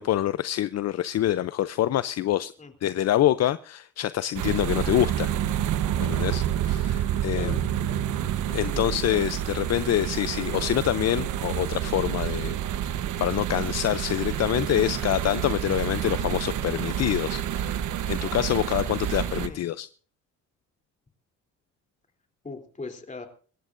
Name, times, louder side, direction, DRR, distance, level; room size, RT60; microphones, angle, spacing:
voice 1, 0.0-2.5 2.8-5.3 6.0-7.6 8.5-12.6 12.8-19.9, left 12 dB, 60° left, 15 dB, 0.6 m, -26 dB
voice 2, 2.6-3.0 7.3-7.8 8.7-9.1 19.3-19.6 22.4-23.3, left 3 dB, 25° left, 4 dB, 3.3 m, -40 dB
sound 1, 4.3-19.5, right 10 dB, 80° right, 1.1 m, -28 dB
26.0 x 14.0 x 2.6 m, 0.42 s
cardioid pair, 90°, 30 cm